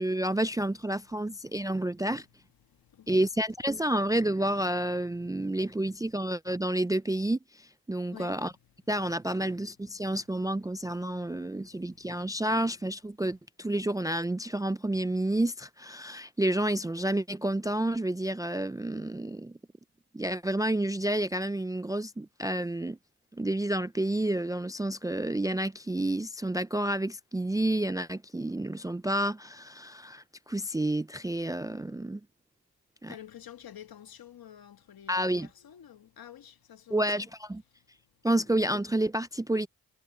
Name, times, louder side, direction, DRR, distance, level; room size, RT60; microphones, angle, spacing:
voice 1, 0.0-2.3 3.1-8.5 8.9-19.6 20.1-23.0 23.3-32.2 33.0-33.1 35.1-35.5 36.9-37.6 38.2-39.7, right 1 dB, 10° right, 0.5 m, -30 dB
voice 2, 1.4-1.9 2.6-3.2 5.3-5.6 8.1-8.6 9.3-9.5 9.9-10.2 11.0-12.4 33.1-37.3 37.7-38.0, left 10 dB, 65° left, 1.7 m, -51 dB
cardioid pair, 70°, 39 cm